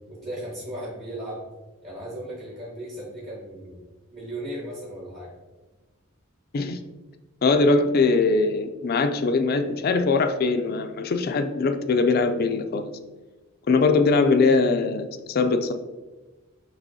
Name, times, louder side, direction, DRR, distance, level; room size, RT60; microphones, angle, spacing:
voice 1, 0.1-1.4 1.8-5.3, right 1 dB, 30° right, -5 dB, 0.9 m, -36 dB
voice 2, 7.4-12.9 13.7-15.7, left 3 dB, 50° left, 8 dB, 0.4 m, -21 dB
6.1 x 2.9 x 2.7 m, 1.2 s
head